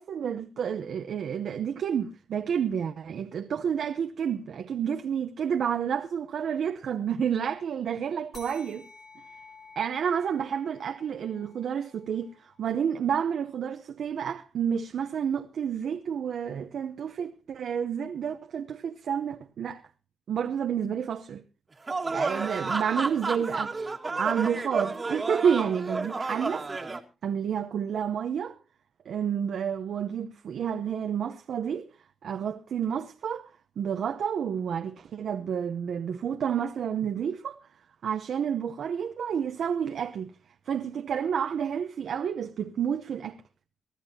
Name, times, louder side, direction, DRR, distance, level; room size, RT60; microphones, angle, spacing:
voice 1, 0.0-8.9 9.8-19.8 20.3-21.4 22.1-23.7 24.2-26.7 27.2-28.6 29.1-31.9 32.2-33.5 33.8-37.6 38.0-40.3 40.7-43.4, right 8 dB, 70° right, 0.8 m, -30 dB
sound 1, 8.3-13.3, left 4 dB, 60° left, 4.4 m, -53 dB
sound 2, 21.9-27.0, right 3 dB, 30° right, 1.8 m, -31 dB
23.5 x 12.0 x 2.8 m
cardioid pair, 80°, 0 cm